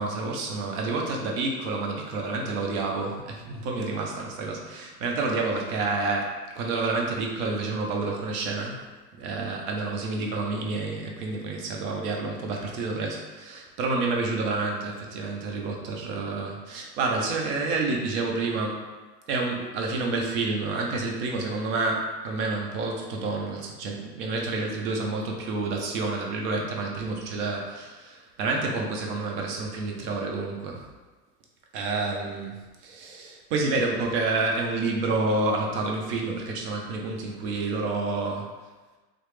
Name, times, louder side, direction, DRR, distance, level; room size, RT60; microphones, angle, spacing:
voice 1, 0.0-8.8 9.2-18.8 19.3-30.8 31.7-38.5, right 3 dB, 45° right, 0 dB, 0.7 m, -29 dB
3.0 x 2.0 x 3.1 m, 1.3 s
hypercardioid pair, 100°, 49 cm